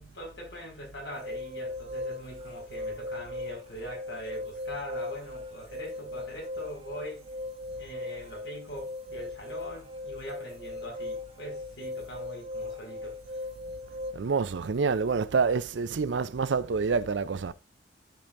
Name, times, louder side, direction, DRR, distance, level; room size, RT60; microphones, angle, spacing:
voice 1, 0.0-7.2 7.8-13.4, equal, 75° left, 4.7 m, -42 dB
sound 1, 1.1-14.1, left 2 dB, 35° right, 1.0 m, -38 dB
voice 2, 14.1-17.5, right 5 dB, 85° right, 0.5 m, -27 dB
13.0 x 5.3 x 2.6 m
head